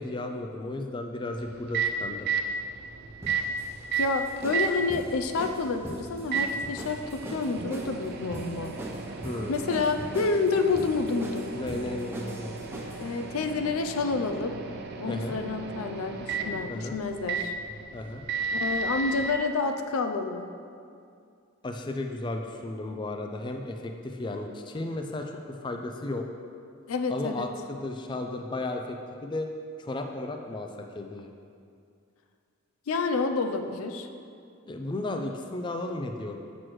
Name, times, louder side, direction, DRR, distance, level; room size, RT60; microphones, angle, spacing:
voice 1, 0.0-2.3 9.2-9.9 11.5-12.6 15.1-15.4 16.7-17.0 17.9-18.2 21.6-26.3 27.1-28.8 29.2-29.5 29.8-30.7 30.9-31.3 34.7-36.4, left 2 dB, 20° left, 4 dB, 0.3 m, -34 dB
Microwave oven, 1.3-19.3, right 4 dB, 50° right, 0.5 m, -34 dB
sound 1, 3.2-13.1, right 1 dB, 10° right, 0.7 m, -41 dB
voice 2, 4.0-8.7 9.5-11.9 13.0-14.6 15.0-17.5 18.5-20.4 26.9-27.5 32.9-34.1, left 4 dB, 80° left, 7 dB, 0.5 m, -29 dB
7.6 x 6.1 x 3.1 m, 2.4 s
head